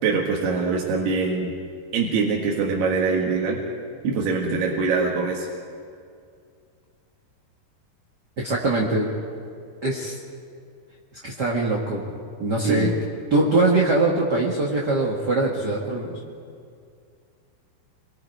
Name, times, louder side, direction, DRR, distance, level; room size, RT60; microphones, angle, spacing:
voice 1, 0.0-1.5 1.9-3.6 4.0-5.5 12.6-13.0, right 4 dB, 75° right, -2 dB, 3.7 m, -23 dB
voice 2, 8.4-9.1 9.8-10.2 11.2-12.1 12.4-12.9 13.3-16.1, right 2 dB, 45° right, -3 dB, 1.4 m, -22 dB
28.0 x 22.0 x 4.7 m, 2.3 s
omnidirectional pair, 4.8 m